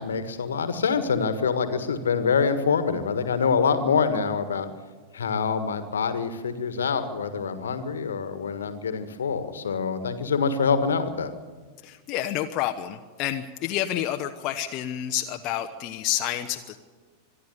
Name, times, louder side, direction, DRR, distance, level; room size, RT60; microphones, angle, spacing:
voice 1, 0.0-4.7 5.1-11.3, left 5 dB, 70° left, 10 dB, 1.6 m, -25 dB
voice 2, 11.8-16.8, left 12 dB, 40° left, 5 dB, 1.0 m, -29 dB
25.0 x 11.0 x 9.9 m, 1.4 s
figure-of-eight pair, 90°, 0 cm